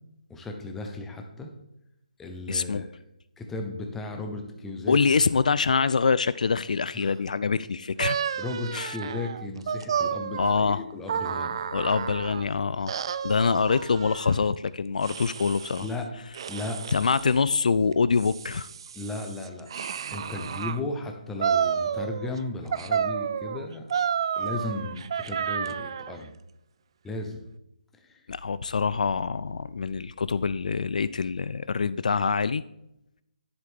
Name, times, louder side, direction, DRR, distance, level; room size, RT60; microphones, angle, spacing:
voice 1, 0.3-1.5 2.2-2.9 3.4-5.0 6.9-7.2 8.4-11.6 15.8-16.1 16.5-16.8 19.0-19.7 20.1-23.9 24.4-26.3 27.0-27.4 28.0-28.2, left 2 dB, 5° left, 3 dB, 0.8 m, -35 dB
voice 2, 2.5-2.8 4.9-8.2 8.7-9.0 10.4-10.8 11.7-12.9 13.2-15.9 16.9-18.7 19.8-19.9 28.3-32.6, left 5 dB, 65° left, 16 dB, 0.3 m, -25 dB
sound 1, 8.0-12.5 12.9-14.4 15.0-15.9 16.3-17.3 17.9-20.8 21.4-22.4 22.7-26.2, right 7 dB, 35° right, 0.3 m, -31 dB
10.5 x 7.7 x 3.6 m, 0.85 s
hypercardioid pair, 165°, 4 cm